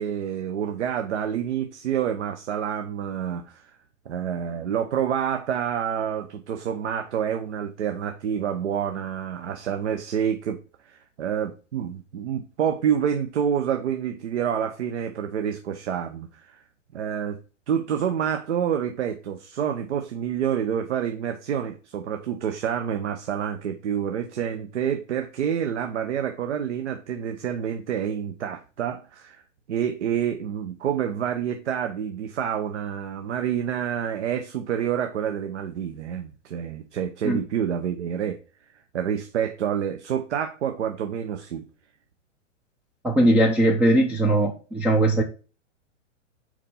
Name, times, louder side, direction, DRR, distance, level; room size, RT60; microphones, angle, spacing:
voice 1, 0.0-3.6 4.1-10.6 10.8-16.6 16.9-17.4 17.7-29.4 29.7-38.4 38.9-41.6, right 8 dB, 65° right, 0.9 m, -28 dB
voice 2, 43.0-45.2, right 1 dB, 5° right, 0.4 m, -20 dB
5.0 x 4.3 x 5.5 m
hypercardioid pair, 110°, 37 cm